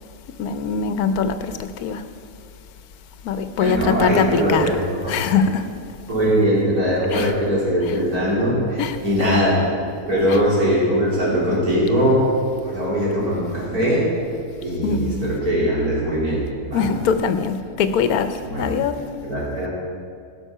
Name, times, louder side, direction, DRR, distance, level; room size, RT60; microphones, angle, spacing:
voice 1, 0.4-2.0 3.2-5.7 7.1-7.3 7.8-8.0 8.8-9.4 10.2-10.4 14.8-15.4 16.7-19.0, left 6 dB, 80° left, 1.2 m, -23 dB
voice 2, 3.6-4.7 5.0-5.2 6.1-9.6 10.1-12.3 12.6-14.1 14.6-16.9 18.5-18.7 19.2-19.7, equal, 85° right, 3.8 m, -21 dB
16.5 x 6.2 x 5.5 m
omnidirectional pair, 1.6 m